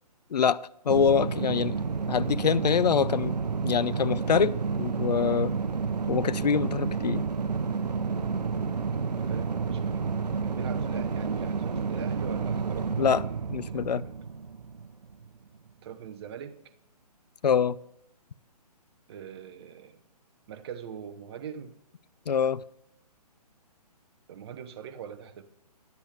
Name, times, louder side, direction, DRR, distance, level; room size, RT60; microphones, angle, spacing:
voice 1, 0.8-1.8 2.1-3.3 3.6-5.5 6.1-7.2 13.0-13.2 13.5-14.0 17.4-17.8 22.3-22.6, left 7 dB, 80° left, 18 dB, 0.5 m, -25 dB
sound 1, 0.9-15.3, right 5 dB, 85° right, 0.8 m, -30 dB
voice 2, 9.0-13.4 13.6-14.1 15.8-16.6 19.1-20.0 20.5-21.7 24.3-25.4, right 8 dB, 40° right, 7 dB, 0.9 m, -42 dB
10.5 x 8.2 x 3.3 m, 0.75 s
figure-of-eight pair, 135°, 21 cm